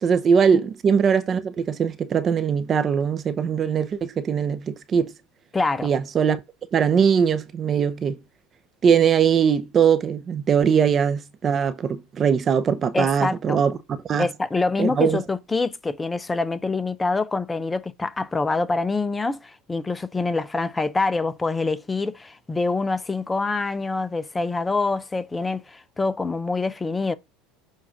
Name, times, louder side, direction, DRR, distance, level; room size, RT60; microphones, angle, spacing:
voice 1, 0.0-5.1 5.8-6.4 6.7-8.2 8.8-13.8 14.1-14.3 14.8-15.2, right 7 dB, 35° right, 0.7 m, -21 dB
voice 2, 5.5-5.9 12.9-13.6 14.2-27.1, left 3 dB, 15° left, 0.5 m, -25 dB
7.2 x 2.5 x 5.6 m
supercardioid pair, 105°, 0 cm